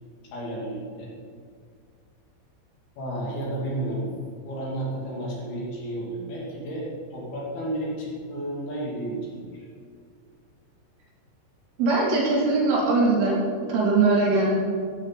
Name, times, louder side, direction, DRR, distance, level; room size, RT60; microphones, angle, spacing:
voice 1, 0.3-1.1 3.0-4.1 4.4-9.7, right 1 dB, 55° left, -5 dB, 4.4 m, -32 dB
voice 2, 11.8-13.4 13.7-14.5, right 3 dB, 75° right, -4 dB, 5.5 m, -21 dB
14.5 x 13.5 x 4.2 m, 2.1 s
omnidirectional pair, 5.7 m